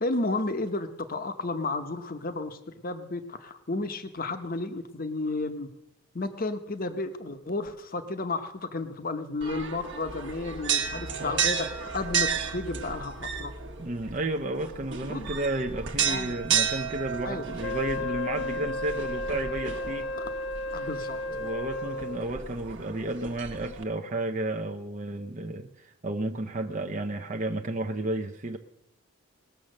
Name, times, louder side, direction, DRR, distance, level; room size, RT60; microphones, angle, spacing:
voice 1, 0.0-2.6 2.8-5.7 6.1-13.5 15.1-15.3 16.1-16.4 17.2-17.5 20.2-20.3 20.7-21.2, left 2 dB, 40° left, 9 dB, 0.9 m, -32 dB
sound 1, 9.4-23.8, right 7 dB, 55° right, 1.2 m, -33 dB
voice 2, 13.8-20.1 21.4-28.6, right 2 dB, 35° right, 4 dB, 0.6 m, -32 dB
Wind instrument woodwind instrument, 17.6-22.3, left 2 dB, 65° left, 0.7 m, -33 dB
19.5 x 7.2 x 6.4 m, 0.84 s
head